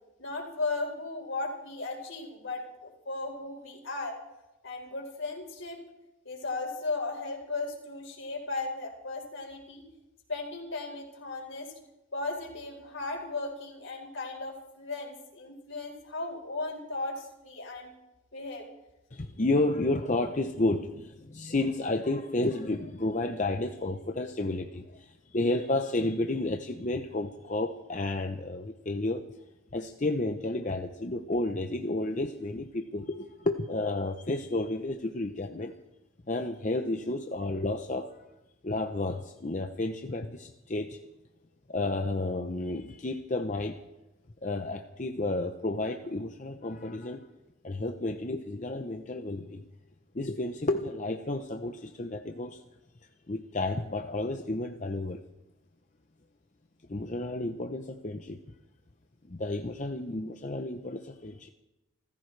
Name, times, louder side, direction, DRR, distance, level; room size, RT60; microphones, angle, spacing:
voice 1, 0.2-4.2 4.6-5.8 6.2-9.9 10.3-11.7 12.1-17.9 18.3-18.7 21.2-21.3, left 3 dB, 70° left, 1 dB, 4.3 m, -36 dB
voice 2, 19.1-29.2 29.7-35.7 36.3-38.2 38.6-41.0 41.7-43.8 44.4-47.3 47.6-49.6 50.1-52.6 53.3-55.2 56.9-58.4 59.2-61.5, left 2 dB, 35° left, 5 dB, 0.7 m, -31 dB
29.5 x 15.0 x 3.3 m, 0.97 s
head